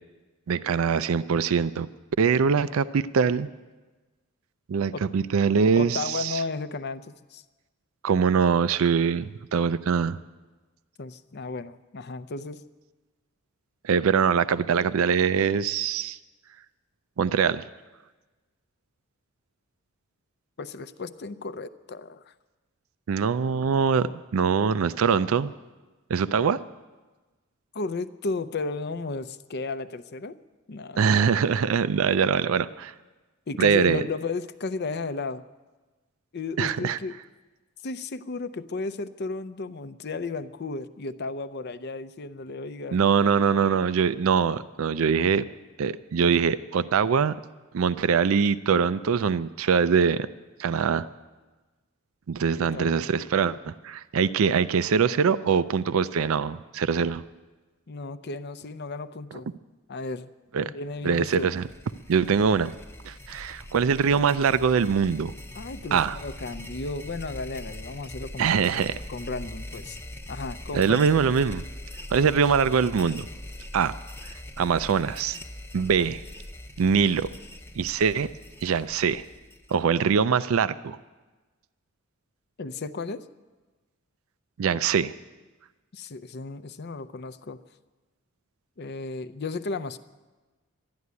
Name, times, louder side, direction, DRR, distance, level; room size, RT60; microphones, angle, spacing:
voice 1, 0.5-1.9 2.2-3.5 4.7-6.4 8.0-10.2 13.8-16.2 17.2-17.6 23.1-25.5 26.1-26.6 31.0-32.9 33.6-34.0 36.6-37.0 42.9-45.4 45.8-47.4 47.7-50.3 50.6-51.0 52.3-57.2 60.5-60.7 61.0-61.6 62.1-62.7 63.0-65.3 65.9-66.2 68.4-69.0 70.7-71.6 72.1-73.3 73.7-73.9 74.6-75.4 75.7-76.2 76.8-77.3 77.8-78.3 78.6-79.2 79.7-81.0 84.6-85.1, right 6 dB, 75° right, 15 dB, 0.4 m, -23 dB
voice 2, 5.8-7.4 11.0-12.6 20.6-22.3 27.7-30.4 30.7-31.4 33.5-35.4 36.3-37.2 37.8-43.0 52.6-53.1 57.9-59.5 59.9-60.3 60.6-61.5 65.5-68.7 69.1-70.0 70.3-71.3 82.6-83.2 85.9-87.6 88.8-90.0, left 3 dB, 50° left, 13 dB, 0.6 m, -34 dB
sound 1, 61.0-80.1, left 1 dB, 10° left, 0.7 m, -42 dB
12.5 x 11.5 x 9.5 m, 1.2 s
head